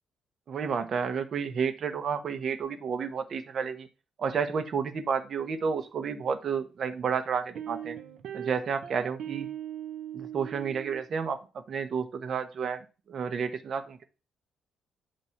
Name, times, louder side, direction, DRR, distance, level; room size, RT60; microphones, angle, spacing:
voice 1, 0.5-3.9 4.2-8.0 8.3-9.5 10.1-11.4 11.7-14.0, right 6 dB, 55° right, 9 dB, 1.1 m, -31 dB
sound 1, 7.6-11.0, right 10 dB, 70° right, 0.8 m, -39 dB
8.3 x 3.0 x 5.8 m, 0.32 s
cardioid pair, 90°, 0 cm